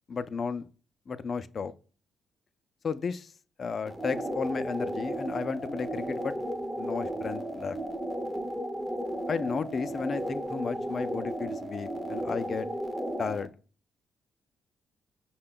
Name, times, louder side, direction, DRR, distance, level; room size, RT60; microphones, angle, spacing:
voice 1, 0.1-0.7 1.1-1.7 2.8-3.3 3.6-6.3 6.8-7.8 9.3-12.7 13.2-13.5, left 5 dB, 45° left, 0.4 m, -33 dB
sound 1, 3.9-13.5, equal, ahead, 0.6 m, -34 dB
5.8 x 2.2 x 3.7 m
cardioid pair, 90°, 0 cm